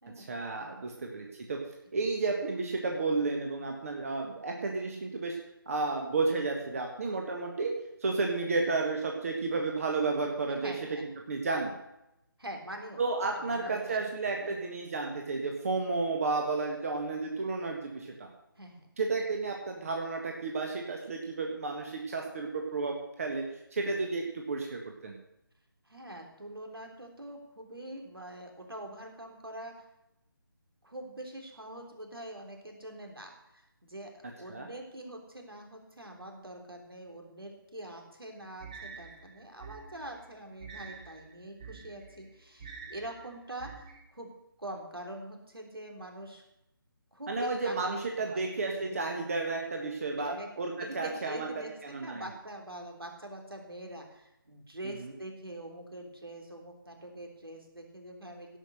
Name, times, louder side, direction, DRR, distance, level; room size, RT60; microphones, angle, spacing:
voice 1, 0.2-1.6 1.9-5.4 5.7-7.7 8.0-10.7 11.3-11.7 13.0-18.1 19.0-23.4 23.7-25.1 34.5-34.7 47.3-50.3 50.6-51.5 51.8-52.2 54.8-55.1, right 3 dB, 40° right, 1 dB, 1.6 m, -32 dB
voice 2, 10.5-11.1 12.4-13.0 13.3-14.0 14.4-14.6 18.6-18.9 25.9-29.8 30.8-44.3 44.6-46.4 47.1-48.0 48.3-48.5 49.1-49.2 50.2-50.5 50.8-58.6, right 1 dB, 80° right, 2 dB, 3.5 m, -44 dB
sound 1, 38.6-44.0, right 5 dB, 20° right, 1.3 m, -48 dB
17.0 x 6.0 x 6.7 m, 0.87 s
figure-of-eight pair, 150°, 12 cm